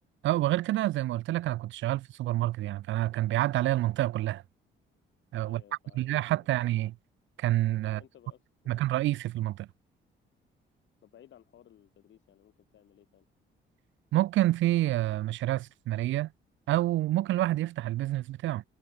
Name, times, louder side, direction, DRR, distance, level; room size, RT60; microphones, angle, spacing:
voice 1, 0.2-4.4 5.3-5.6 6.0-6.9 7.4-8.0 8.7-9.7 14.1-16.3 16.7-18.6, right 15 dB, 75° right, 0.5 m, -28 dB
voice 2, 5.4-6.1 6.4-6.6 7.8-8.8 11.0-13.3, left 11 dB, 70° left, 3.8 m, -58 dB
cardioid pair, 90°, 20 cm